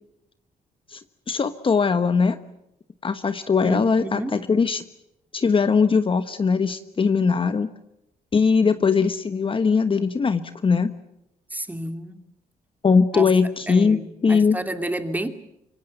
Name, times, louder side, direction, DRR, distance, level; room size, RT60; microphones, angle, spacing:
voice 1, 1.3-2.4 3.0-4.8 5.3-7.7 8.3-10.9 12.8-14.6, left 5 dB, 35° left, 10 dB, 1.3 m, -20 dB
voice 2, 3.6-4.4 11.5-12.2 13.1-13.3 13.7-15.3, right 1 dB, 10° right, 8 dB, 2.6 m, -30 dB
25.5 x 24.0 x 8.0 m, 0.83 s
cardioid pair, 95°, 15 cm